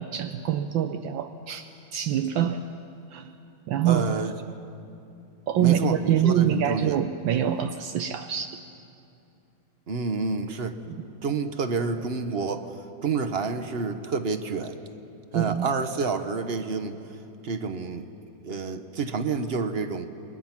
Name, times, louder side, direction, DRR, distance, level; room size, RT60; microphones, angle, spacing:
voice 1, 0.0-2.6 3.1-3.3 3.7-4.2 5.5-8.6 15.3-15.7, right 9 dB, 75° right, 7 dB, 1.4 m, -25 dB
voice 2, 3.8-4.3 5.5-7.0 9.9-10.8 11.2-12.7 13.0-14.8 15.3-17.0 17.4-18.1 18.4-20.1, right 4 dB, 45° right, 8 dB, 0.9 m, -29 dB
28.5 x 22.0 x 5.9 m, 2.7 s
omnidirectional pair, 2.2 m